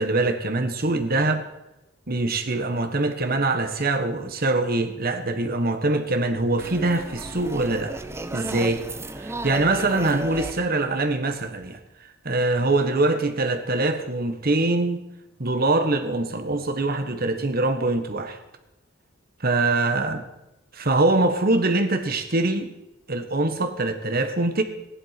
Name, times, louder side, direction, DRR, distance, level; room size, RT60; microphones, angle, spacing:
voice 1, 0.0-1.5 2.1-8.0 8.3-8.9 9.2-15.1 15.4-18.4 19.4-20.2 20.7-22.7 23.1-24.6, right 2 dB, 45° right, 8 dB, 1.4 m, -23 dB
sound 1, 6.6-11.8, right 2 dB, 10° right, 0.7 m, -35 dB
15.5 x 11.0 x 5.9 m, 0.96 s
head